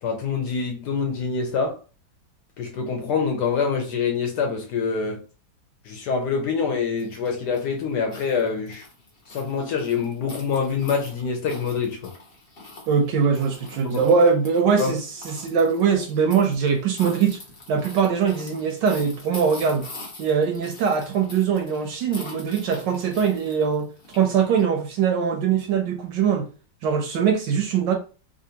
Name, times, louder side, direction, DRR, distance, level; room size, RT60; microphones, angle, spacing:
voice 1, 0.0-1.8 2.6-5.2 5.9-8.8 9.3-12.1 13.8-14.1 14.8-14.9, left 5 dB, 70° left, 1.1 m, -25 dB
sound 1, 7.0-24.6, left 2 dB, 40° left, 0.8 m, -44 dB
voice 2, 12.9-17.4 17.7-19.9 20.2-23.9 24.1-26.5 26.8-27.9, right 6 dB, 75° right, 1.1 m, -22 dB
3.4 x 2.5 x 2.7 m
omnidirectional pair, 2.2 m